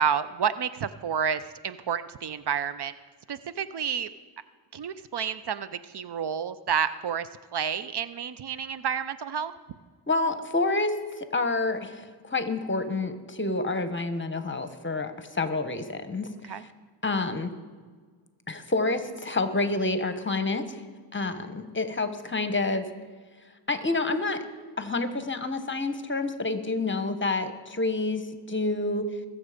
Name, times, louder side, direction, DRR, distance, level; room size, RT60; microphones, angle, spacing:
voice 1, 0.0-2.9 3.3-4.1 4.7-9.5 16.5-16.6 21.4-21.6, right 7 dB, 60° right, 14 dB, 0.6 m, -30 dB
voice 2, 10.1-16.7 17.0-17.5 18.5-20.8 21.1-22.9 23.7-24.4 24.8-28.2 28.5-29.1, left 3 dB, 25° left, 9 dB, 1.2 m, -28 dB
21.0 x 7.3 x 5.1 m, 1.5 s
cardioid pair, 65°, 46 cm